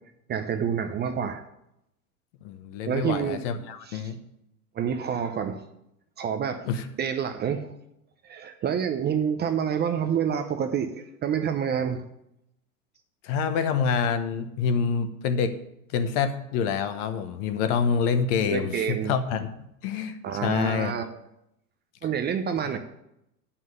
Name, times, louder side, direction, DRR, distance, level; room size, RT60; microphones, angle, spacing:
voice 1, 0.3-1.4 2.9-3.4 3.9-4.1 4.8-5.6 6.2-6.6 7.0-7.7 8.2-12.0 18.5-19.1 20.2-21.0 22.0-22.8, right 8 dB, 20° right, 7 dB, 0.6 m, -28 dB
voice 2, 2.4-4.2 6.6-6.8 13.2-15.5 15.9-19.5 19.8-20.9, left 6 dB, 50° left, 9 dB, 1.1 m, -26 dB
9.1 x 5.7 x 6.6 m, 0.82 s
hypercardioid pair, 95°, 46 cm